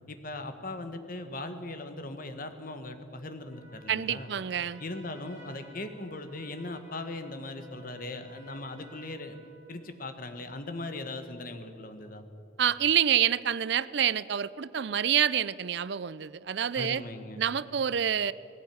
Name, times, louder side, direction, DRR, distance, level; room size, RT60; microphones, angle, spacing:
voice 1, 0.1-4.3 4.8-9.4 9.7-12.2 16.7-17.4, left 2 dB, 45° left, 8 dB, 1.5 m, -39 dB
Trumpet, 3.4-9.9, equal, 10° right, 7.1 m, -55 dB
voice 2, 3.9-4.8 12.6-17.0 17.4-18.3, right 9 dB, 60° right, 18 dB, 0.4 m, -27 dB
18.5 x 16.5 x 9.3 m, 2.7 s
head